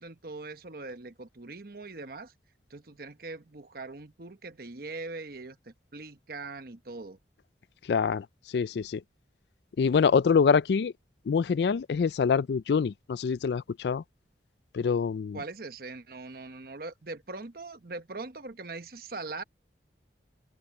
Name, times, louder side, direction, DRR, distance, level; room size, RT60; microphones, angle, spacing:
voice 1, 0.0-2.3 2.7-7.2 15.3-19.4, right 3 dB, 55° right, 1.1 m, -41 dB
voice 2, 7.8-9.0 9.8-10.9 11.3-14.0 14.7-15.4, left 6 dB, 70° left, 0.4 m, -25 dB
open air
head